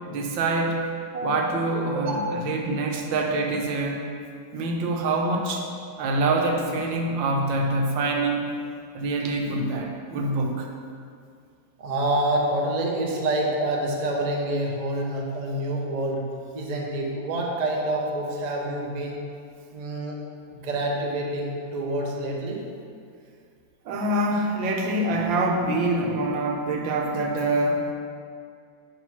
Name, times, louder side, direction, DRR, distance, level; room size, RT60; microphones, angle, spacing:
voice 1, 0.0-0.8 1.2-4.0 4.5-5.7 6.0-8.5 8.9-10.7 23.9-27.9, right 2 dB, 80° right, 1 dB, 1.5 m, -25 dB
voice 2, 1.1-1.5 1.9-2.2 11.8-16.2 16.5-19.2 19.7-20.2 20.5-22.6, right 1 dB, 50° right, -1 dB, 0.4 m, -27 dB
5.7 x 4.5 x 5.6 m, 2.2 s
omnidirectional pair, 2.1 m